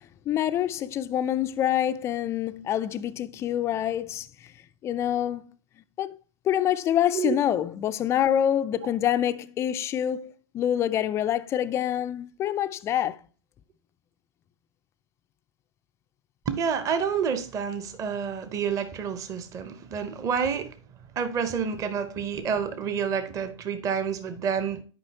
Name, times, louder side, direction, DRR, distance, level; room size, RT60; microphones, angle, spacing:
voice 1, 0.3-4.5 4.8-5.4 6.0-6.2 6.4-13.2, left 11 dB, 15° left, 0.3 m, -26 dB
voice 2, 16.5-20.7 21.2-24.8, right 7 dB, 20° right, 0.7 m, -28 dB
10.5 x 5.2 x 2.8 m
figure-of-eight pair, 110°, 16 cm